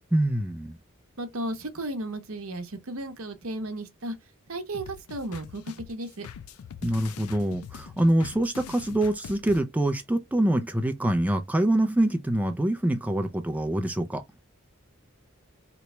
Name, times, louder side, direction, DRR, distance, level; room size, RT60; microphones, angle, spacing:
voice 1, 0.1-0.8 6.8-14.2, right 1 dB, 5° right, 0.3 m, -25 dB
voice 2, 1.2-4.2 4.5-5.6 5.9-6.3, right 1 dB, 65° right, 0.8 m, -34 dB
sound 1, 4.7-9.6, left 7 dB, 80° left, 0.4 m, -43 dB
3.0 x 2.2 x 4.1 m
head